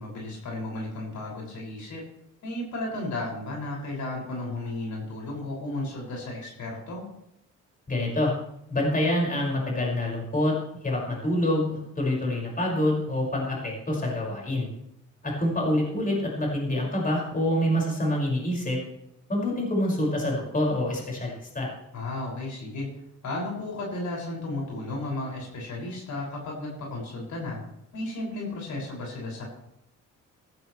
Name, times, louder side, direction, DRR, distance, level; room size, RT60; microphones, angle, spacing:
voice 1, 0.0-2.0 2.4-7.0 21.9-22.9 23.2-27.6 27.9-29.4, left 2 dB, 70° left, -2 dB, 6.4 m, -34 dB
voice 2, 7.9-8.3 8.7-10.5 10.8-14.7 15.2-18.8 19.3-21.7, left 1 dB, 30° left, -2 dB, 5.9 m, -26 dB
15.5 x 15.0 x 3.3 m, 0.80 s
cardioid pair, 90°, 30 cm